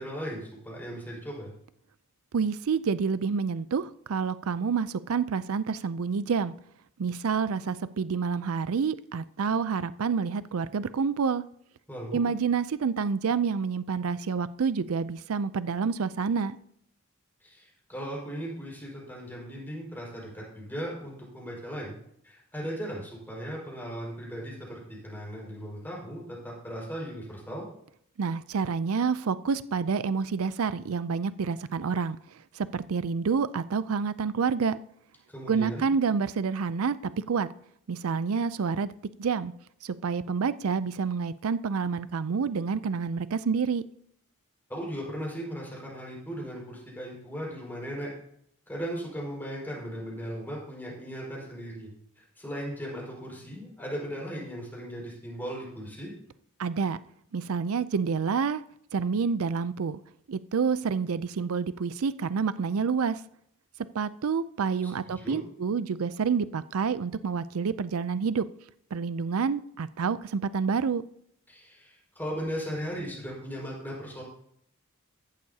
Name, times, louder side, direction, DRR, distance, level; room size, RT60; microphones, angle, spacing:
voice 1, 0.0-1.5 11.9-12.2 17.4-22.0 22.2-27.7 35.3-35.9 44.7-48.1 48.7-51.9 52.2-56.1 64.8-65.4 71.5-74.2, equal, 10° left, 4.9 m, -37 dB
voice 2, 2.3-6.5 7.0-11.4 12.1-16.6 28.2-34.8 35.5-37.5 37.9-38.9 39.2-39.5 39.8-43.8 56.6-57.0 57.3-58.6 58.9-60.0 60.3-63.2 63.9-68.4 68.9-71.0, right 5 dB, 75° right, 0.5 m, -28 dB
15.0 x 11.5 x 2.8 m
head